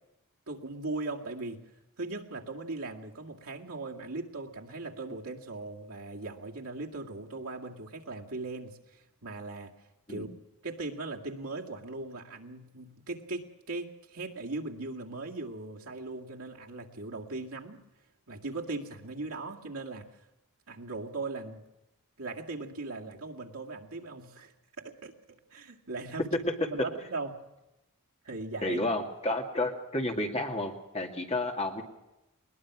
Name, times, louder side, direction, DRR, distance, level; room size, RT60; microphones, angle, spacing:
voice 1, 0.5-1.6 2.0-9.7 10.1-10.3 10.6-17.8 18.3-20.1 20.7-21.6 22.2-26.3 26.7-27.4 28.2-28.8, right 3 dB, 75° right, 1 dB, 2.1 m, -39 dB
voice 2, 28.6-31.8, left 2 dB, 30° left, 3 dB, 2.1 m, -31 dB
21.0 x 20.5 x 6.1 m, 0.97 s
head